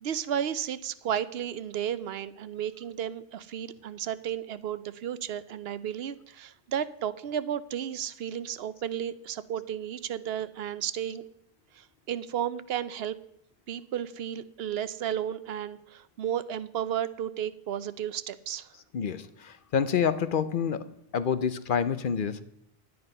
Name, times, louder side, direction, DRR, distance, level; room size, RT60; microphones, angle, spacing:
voice 1, 0.0-11.2 11.7-13.2 13.7-18.7, right 9 dB, 75° right, 15 dB, 0.8 m, -33 dB
voice 2, 18.9-20.8 21.1-22.4, left 7 dB, 60° left, 13 dB, 0.8 m, -28 dB
11.0 x 9.6 x 5.4 m, 0.78 s
omnidirectional pair, 1.1 m